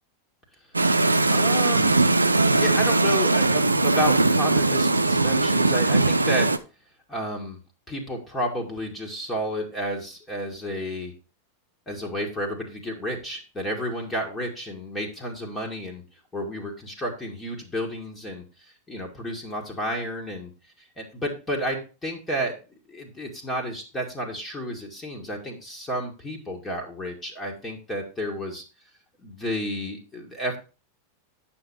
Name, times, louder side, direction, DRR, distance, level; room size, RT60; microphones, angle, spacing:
sound 1, 0.7-6.6, right 2 dB, 80° right, 0.5 m, -20 dB
voice 1, 1.3-2.1 2.6-6.5 7.1-7.6 7.9-11.1 11.9-16.0 16.3-20.5 20.8-22.5 22.9-28.6 29.2-30.6, equal, 15° left, 0 dB, 1.9 m, -31 dB
9.2 x 6.1 x 4.2 m, 0.32 s
figure-of-eight pair, 90°, 0 cm